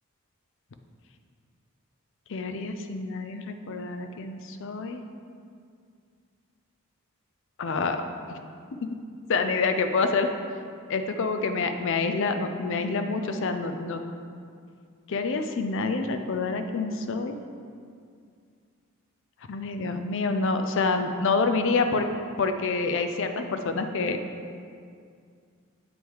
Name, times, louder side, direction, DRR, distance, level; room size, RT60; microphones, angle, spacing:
voice 1, 2.3-5.0 7.6-8.0 8.8-8.9 9.3-10.3 10.9-14.0 15.1-17.4 19.5-22.1 22.4-24.2, left 4 dB, 55° left, 7 dB, 0.4 m, -27 dB
7.9 x 3.6 x 4.6 m, 2.3 s
head